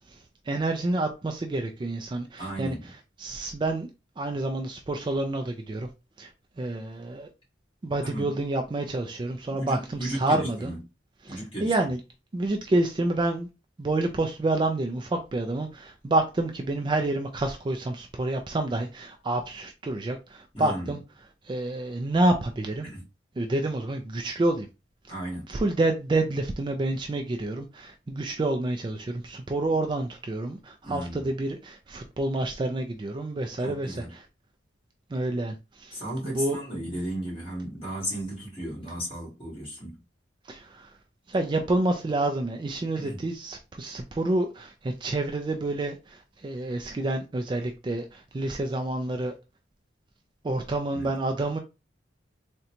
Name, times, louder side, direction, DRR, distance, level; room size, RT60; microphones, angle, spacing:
voice 1, 0.5-2.9 3.2-3.9 4.2-5.9 6.2-6.3 6.6-7.3 7.8-10.7 11.2-12.0 12.3-13.5 13.8-21.0 21.4-22.9 23.4-24.7 25.5-34.2 35.1-36.6 40.5-40.9 41.3-49.4 50.4-51.6, right 2 dB, 25° right, 0.3 m, -28 dB
voice 2, 2.4-2.8 8.0-8.4 9.5-10.8 11.3-11.7 20.5-20.9 22.8-23.0 25.1-25.5 30.8-31.3 33.6-34.1 35.9-40.0 42.9-43.2 50.9-51.1, right 1 dB, 30° left, 1.8 m, -35 dB
3.7 x 2.2 x 2.8 m
head